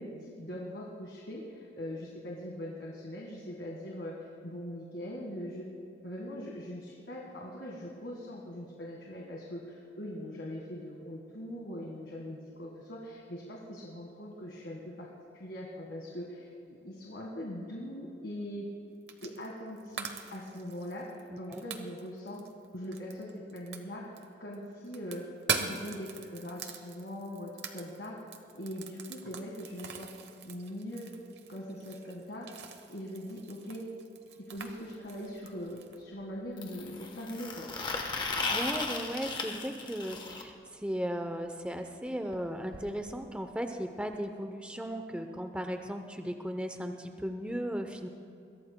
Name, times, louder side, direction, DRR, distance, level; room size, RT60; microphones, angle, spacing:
voice 1, 0.0-4.1 4.4-5.7 6.0-15.1 15.3-18.7 19.2-21.1 21.4-22.4 22.7-24.0 24.4-25.2 25.6-28.2 28.5-30.1 30.4-31.1 31.5-32.5 32.9-33.8 34.4-37.7, equal, 75° left, -2 dB, 1.7 m, -41 dB
sound 1, 19.1-19.5 19.8-24.3 24.5-36.0, right 6 dB, 70° right, 1.0 m, -42 dB
voice 2, 21.3-21.6 38.1-48.1, equal, 5° right, 5 dB, 0.6 m, -36 dB
sound 2, 34.6-34.7 36.6-40.4 42.3-42.4 42.7-42.8 43.1-43.2 44.1-44.2, left 3 dB, 25° left, 1.0 m, -36 dB
21.5 x 16.5 x 2.2 m, 2.6 s
head